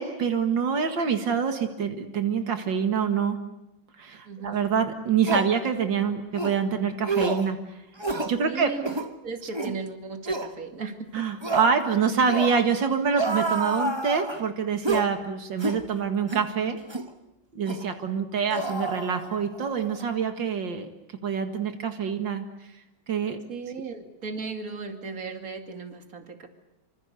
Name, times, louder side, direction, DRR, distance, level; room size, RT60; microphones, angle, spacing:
voice 1, 0.0-3.4 4.0-7.8 8.3-8.7 9.7-9.8 11.1-16.8 17.5-20.9 21.2-22.5 23.1-23.4, right 6 dB, 85° right, 6 dB, 2.5 m, -26 dB
voice 2, 4.2-4.6 8.4-8.9 9.2-11.2 23.5-26.5, right 4 dB, 50° right, 6 dB, 2.8 m, -36 dB
sound 1, 4.5-4.6 5.2-5.5 6.3-6.6 7.0-7.5 8.0-8.3 8.8-9.1 9.5-9.7 10.3-10.5 11.4-11.7 12.3-12.6 13.1-14.4 14.8-15.1 15.6-15.8 16.3-16.4 16.9-17.1 17.7-17.8 18.5-19.6 19.8-20.0, right 2 dB, 15° right, 1.2 m, -29 dB
26.5 x 25.5 x 8.2 m, 0.93 s
omnidirectional pair, 2.0 m